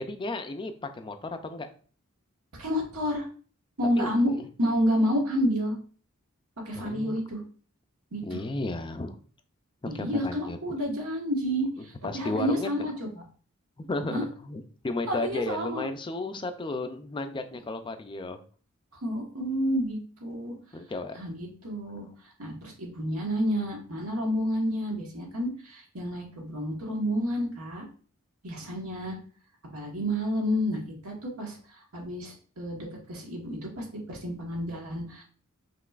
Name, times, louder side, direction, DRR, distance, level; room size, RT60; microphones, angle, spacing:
voice 1, 0.0-1.7 4.0-4.5 6.8-7.2 8.2-9.2 9.9-10.6 11.8-12.7 13.8-18.4 20.7-21.2, left 2 dB, 25° left, 7 dB, 0.4 m, -34 dB
voice 2, 2.6-3.3 3.8-4.3 4.6-5.8 6.6-7.4 8.1-8.4 9.8-13.2 14.1-14.2 15.1-15.8 19.0-20.5 21.1-22.1 22.4-27.8 28.4-29.2 29.7-35.2, equal, 90° right, -1 dB, 1.5 m, -30 dB
5.8 x 3.1 x 2.4 m, 0.41 s
head